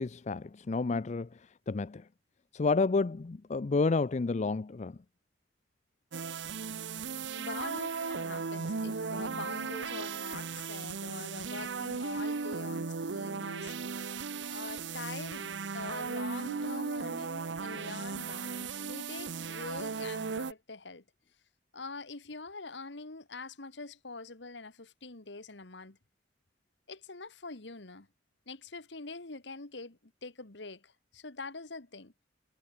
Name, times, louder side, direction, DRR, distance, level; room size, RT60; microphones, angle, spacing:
voice 1, 0.0-2.1 2.5-5.0, left 3 dB, 40° left, 0.4 m, -30 dB
sound 1, 6.1-20.5, right 4 dB, 75° right, 0.8 m, -36 dB
voice 2, 7.4-13.8 14.5-21.0 21.7-26.0 26.9-28.1 28.5-32.1, left 3 dB, 70° left, 1.8 m, -44 dB
head